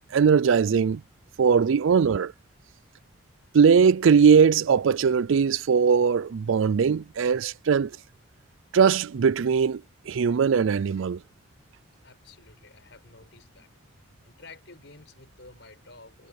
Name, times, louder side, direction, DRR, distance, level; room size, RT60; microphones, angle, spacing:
voice 1, 0.1-1.0 1.4-2.3 3.5-7.9 8.7-9.8 10.1-11.2, right 6 dB, 75° right, 0.4 m, -20 dB
voice 2, 12.0-13.7 14.2-16.3, left 3 dB, 60° left, 5.8 m, -51 dB
head